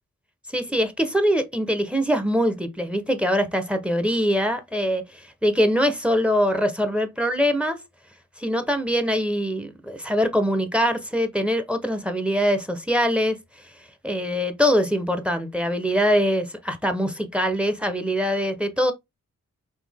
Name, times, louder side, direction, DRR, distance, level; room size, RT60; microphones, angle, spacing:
voice 1, 0.5-7.8 8.4-13.6 14.0-18.9, equal, 5° right, 0.9 m, -23 dB
4.2 x 2.8 x 3.4 m
cardioid pair, 55°, 32 cm